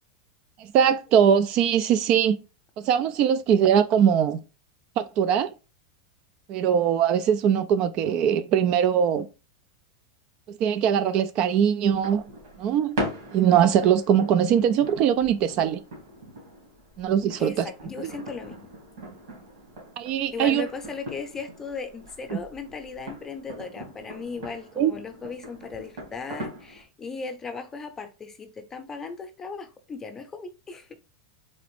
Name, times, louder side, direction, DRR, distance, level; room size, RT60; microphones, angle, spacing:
voice 1, 0.6-2.4 2.8-4.4 5.0-5.5 6.5-9.3 10.5-12.2 12.6-13.0 13.3-15.8 17.0-17.7 20.0-20.7 24.8-24.9, right 8 dB, 45° right, 0.3 m, -21 dB
sound 1, 11.8-26.8, equal, 75° right, 2.1 m, -40 dB
voice 2, 17.4-18.7 20.3-31.0, left 4 dB, 20° left, 0.7 m, -37 dB
4.0 x 2.4 x 3.3 m
hypercardioid pair, 115°, 2 cm